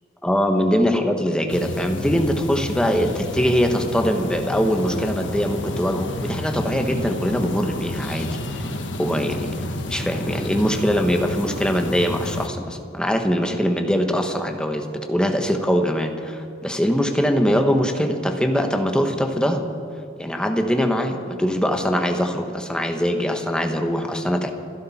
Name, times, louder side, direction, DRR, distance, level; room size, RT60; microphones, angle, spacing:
voice 1, 0.2-9.5 9.9-19.7 20.2-24.5, equal, 5° left, 4 dB, 1.2 m, -22 dB
sound 1, 1.5-12.5, left 1 dB, 65° left, 1.2 m, -30 dB
27.5 x 11.5 x 4.3 m, 2.7 s
head